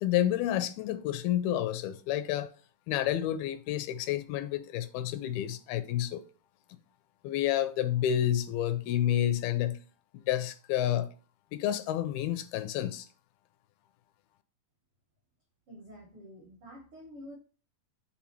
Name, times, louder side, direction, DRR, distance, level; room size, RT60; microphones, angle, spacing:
voice 1, 0.0-2.5 2.9-6.2 7.2-9.8 10.3-11.1 11.5-13.1, left 12 dB, 85° left, 2.4 m, -29 dB
voice 2, 15.7-17.3, equal, 70° right, 1.3 m, -48 dB
6.2 x 3.6 x 4.4 m
omnidirectional pair, 4.4 m